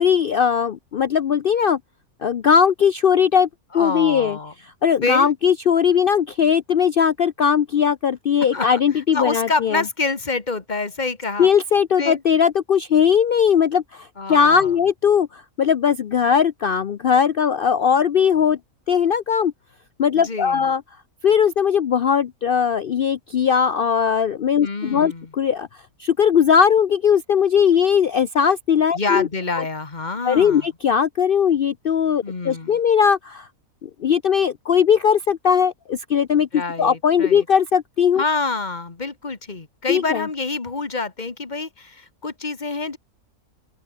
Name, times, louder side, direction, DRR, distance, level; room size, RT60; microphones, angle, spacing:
voice 1, 0.0-1.8 2.2-3.5 3.7-4.4 4.8-9.8 11.4-18.6 18.9-19.5 20.0-20.8 21.2-25.7 26.0-29.3 30.2-33.5 33.8-38.2 39.9-40.2, left 7 dB, 55° left, 0.6 m, -19 dB
voice 2, 3.7-4.5 5.0-5.3 8.5-8.8 9.1-11.5 12.0-12.2 14.2-14.7 20.1-20.6 24.6-25.3 28.9-30.7 32.2-32.8 36.5-37.5 38.2-43.0, left 3 dB, 30° left, 1.8 m, -27 dB
open air
omnidirectional pair, 1.5 m